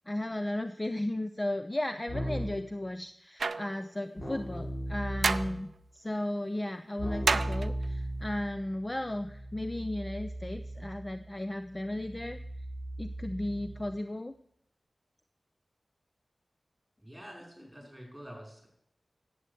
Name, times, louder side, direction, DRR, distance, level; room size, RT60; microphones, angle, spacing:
voice 1, 0.1-12.4 13.0-14.3, left 1 dB, 20° left, 9 dB, 0.5 m, -35 dB
Keyboard (musical), 2.1-2.7 4.2-5.8 7.0-14.0, right 1 dB, 45° left, 3.5 m, -38 dB
sound 1, 3.4-3.8 5.2-5.6 7.3-7.8, right 4 dB, 85° right, 0.4 m, -29 dB
voice 2, 17.0-18.7, equal, 5° right, 0 dB, 5.0 m, -47 dB
11.5 x 7.9 x 8.2 m, 0.71 s
wide cardioid pair, 95°, 0 cm